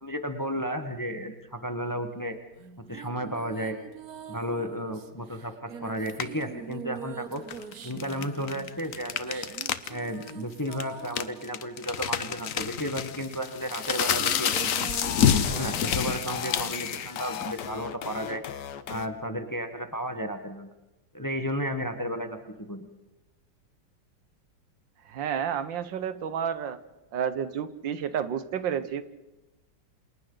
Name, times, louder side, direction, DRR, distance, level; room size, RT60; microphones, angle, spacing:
voice 1, 0.0-2.3 2.9-3.7 4.3-7.4 7.8-9.4 9.9-14.5 14.8-14.9 15.5-18.4 18.9-20.7 21.1-22.4 22.7-22.9, equal, 15° left, 6 dB, 1.1 m, -33 dB
sound 1, 2.6-12.5 13.3-18.0, right 7 dB, 60° right, 1.5 m, -44 dB
sound 2, 6.1-6.4 7.4-9.9 10.2-10.3 10.7-17.7, left 8 dB, 55° left, 1.1 m, -28 dB
sound 3, 14.0-19.1, left 9 dB, 75° left, 1.6 m, -37 dB
voice 2, 25.1-26.8 27.1-29.0, right 8 dB, 85° right, 12 dB, 1.7 m, -30 dB
28.5 x 27.0 x 3.9 m, 1.0 s
omnidirectional pair, 2.0 m